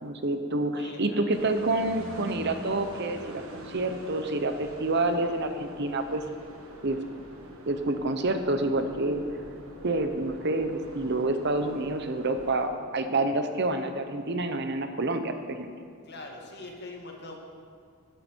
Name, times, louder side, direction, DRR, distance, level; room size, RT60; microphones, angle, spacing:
voice 1, 0.0-6.2 6.8-7.0 7.7-9.2 9.8-15.7, right 2 dB, 50° right, 8 dB, 0.8 m, -28 dB
voice 2, 0.8-1.3 16.0-17.4, left 2 dB, 50° left, 1 dB, 1.8 m, -42 dB
sound 1, 1.3-12.7, equal, 75° right, 1.5 m, -45 dB
16.0 x 9.9 x 4.6 m, 2.2 s
head